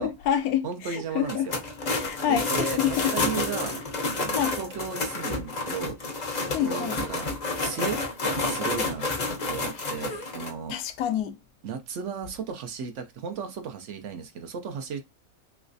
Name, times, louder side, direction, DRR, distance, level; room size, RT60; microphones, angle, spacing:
voice 1, 0.0-1.5 2.0-3.1 4.1-4.6 6.5-7.0 10.7-11.4, left 10 dB, 90° left, 1.1 m, -27 dB
voice 2, 0.6-1.6 2.3-3.8 4.2-6.0 6.4-7.3 7.6-9.1 9.5-10.7 11.6-15.0, right 6 dB, 65° right, 0.8 m, -35 dB
sound 1, 1.3-10.5, left 3 dB, 45° left, 0.6 m, -30 dB
3.2 x 3.0 x 2.5 m
omnidirectional pair, 1.5 m